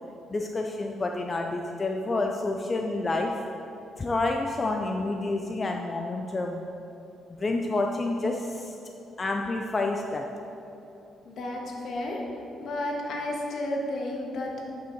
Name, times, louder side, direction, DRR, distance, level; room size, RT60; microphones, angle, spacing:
voice 1, 0.3-3.4 4.0-6.6 7.4-8.7 9.2-10.3, left 2 dB, 30° left, 2 dB, 0.5 m, -29 dB
voice 2, 11.2-12.2 12.6-14.6, left 1 dB, 65° left, -1 dB, 1.4 m, -32 dB
8.6 x 5.6 x 4.6 m, 3.0 s
cardioid pair, 90°, 0 cm